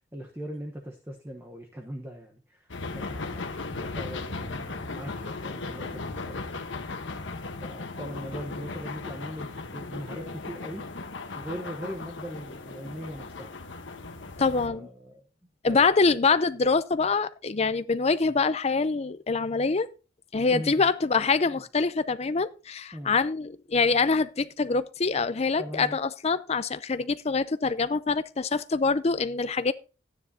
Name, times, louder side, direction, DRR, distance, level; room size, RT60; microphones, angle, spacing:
voice 1, 0.0-3.5 3.8-6.6 7.6-10.9 11.3-13.5 14.6-15.2 15.7-15.9 18.3-18.4 20.5-20.9 21.5-21.6 22.9-23.2 25.6-26.0, equal, 10° right, 1.0 m, -40 dB
sound 1, 2.7-14.7, left 3 dB, 70° left, 1.1 m, -37 dB
voice 2, 14.4-14.9 15.6-19.9 20.3-29.7, left 4 dB, 35° left, 0.5 m, -25 dB
12.5 x 9.8 x 2.8 m
head